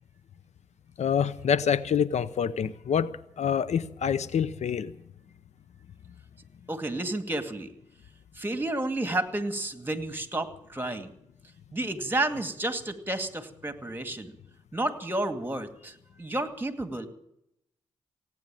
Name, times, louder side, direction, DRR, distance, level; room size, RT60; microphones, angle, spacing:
voice 1, 1.0-4.9, left 7 dB, 70° left, 0.7 m, -26 dB
voice 2, 6.7-7.7 8.4-11.1 11.7-14.4 14.7-17.1, right 2 dB, 15° right, 2.3 m, -31 dB
17.0 x 9.4 x 8.9 m
supercardioid pair, 50°, 12 cm